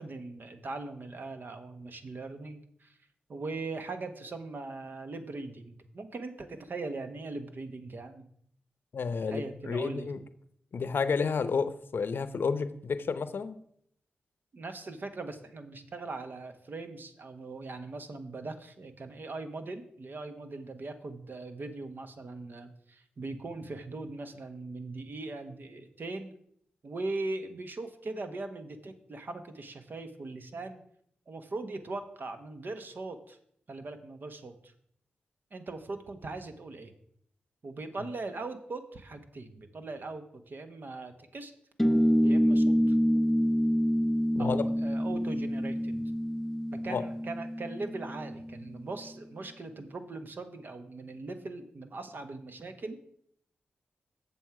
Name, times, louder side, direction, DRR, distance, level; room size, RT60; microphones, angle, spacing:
voice 1, 0.0-3.0 3.3-8.3 9.2-10.1 14.5-26.3 26.8-30.8 31.3-33.4 33.7-34.7 35.5-36.9 37.6-41.5 42.2-43.0 44.4-46.0 46.7-53.0, right 3 dB, 60° right, 8 dB, 1.1 m, -40 dB
voice 2, 8.9-10.2 10.7-13.6 44.3-44.6 46.9-47.0, left 5 dB, 65° left, 13 dB, 0.6 m, -31 dB
sound 1, 41.8-48.8, equal, 5° left, 0.4 m, -27 dB
7.3 x 7.1 x 4.7 m, 0.68 s
supercardioid pair, 40°, 4 cm